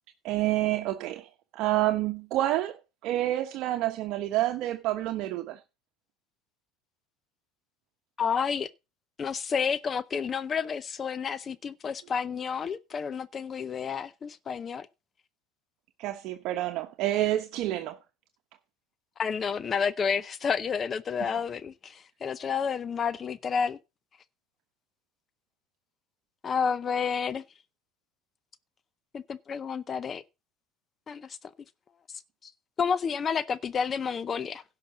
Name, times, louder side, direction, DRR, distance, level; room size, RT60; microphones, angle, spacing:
voice 1, 0.2-2.8 3.0-5.6 16.0-18.0 21.2-21.3, right 14 dB, 55° right, 1.1 m, -28 dB
voice 2, 8.2-8.7 9.2-14.9 19.2-23.8 26.4-27.4 29.1-30.2 31.1-31.4 32.4-32.5 32.8-34.6, left 6 dB, 30° left, 0.6 m, -30 dB
11.0 x 5.8 x 7.3 m
supercardioid pair, 110°, 0 cm